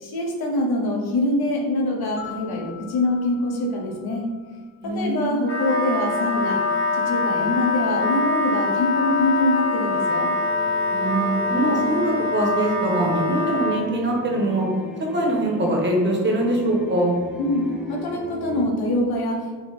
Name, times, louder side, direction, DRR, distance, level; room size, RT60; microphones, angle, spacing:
voice 1, 0.0-4.3 4.8-6.6 6.9-10.3 17.4-19.6, left 1 dB, 85° left, -1 dB, 1.0 m, -24 dB
sound 1, 2.2-5.3, left 13 dB, 55° left, 1.4 m, -45 dB
voice 2, 4.8-5.3 10.9-14.7 15.1-17.1, right 1 dB, 30° right, -1 dB, 0.9 m, -23 dB
Wind instrument woodwind instrument, 5.4-13.8, left 3 dB, 40° left, 0.7 m, -24 dB
sound 2, 10.3-18.7, left 1 dB, 5° right, 0.4 m, -36 dB
4.0 x 2.8 x 4.1 m, 1.4 s
wide cardioid pair, 165°, 37 cm